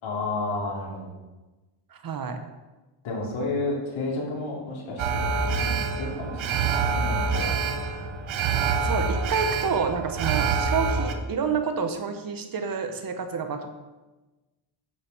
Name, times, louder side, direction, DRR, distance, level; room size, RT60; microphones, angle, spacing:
voice 1, 0.0-1.1 3.0-7.5, left 2 dB, 70° left, -3 dB, 3.7 m, -31 dB
voice 2, 1.9-2.4 8.8-13.7, right 6 dB, 45° right, 7 dB, 1.1 m, -28 dB
Alarm, 5.0-11.1, right 5 dB, 70° right, 1.3 m, -26 dB
9.5 x 6.9 x 7.0 m, 1.2 s
cardioid pair, 150°, 49 cm